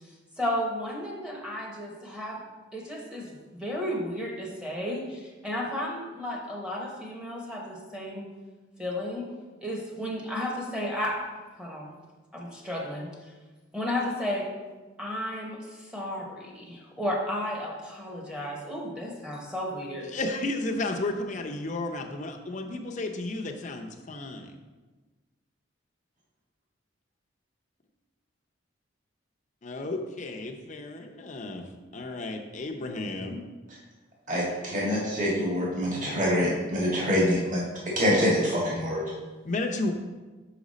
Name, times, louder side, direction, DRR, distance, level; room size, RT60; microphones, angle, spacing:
voice 1, 0.4-2.4 2.7-8.3 8.8-9.3 9.6-11.2 11.6-11.9 12.3-13.1 13.7-14.5 15.0-20.1, left 1 dB, 5° right, -2 dB, 0.9 m, -33 dB
voice 2, 20.1-24.5 29.6-33.5 39.4-39.9, left 2 dB, 40° left, 3 dB, 0.6 m, -33 dB
voice 3, 34.3-37.6 37.9-39.0, equal, 40° right, -5 dB, 1.6 m, -25 dB
5.8 x 5.0 x 4.1 m, 1.2 s
head